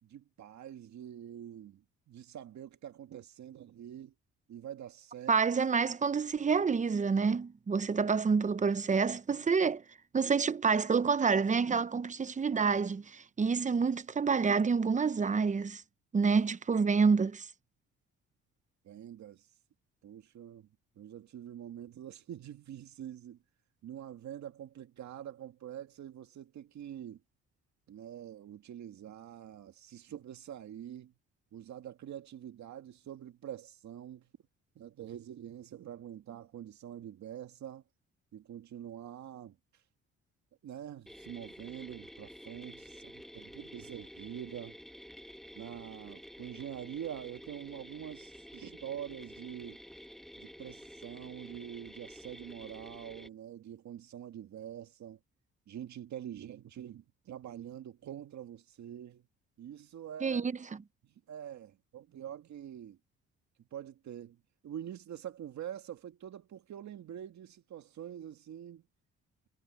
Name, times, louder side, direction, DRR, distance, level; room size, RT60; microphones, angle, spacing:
voice 1, 0.0-4.1 4.5-5.3 18.8-19.5 20.0-20.7 21.0-23.4 23.8-27.2 27.9-31.1 31.5-34.3 34.8-37.8 38.3-39.6 40.6-44.8 45.6-49.8 50.3-55.2 55.7-59.2 59.6-60.5 61.0-63.0 63.7-68.8, right 10 dB, 65° right, 2.0 m, -45 dB
voice 2, 5.3-9.8 10.1-15.8 16.1-17.5 60.2-60.5, right 5 dB, 25° right, 0.7 m, -28 dB
sound 1, 41.1-53.3, equal, ahead, 1.2 m, -50 dB
cardioid pair, 90°, 30 cm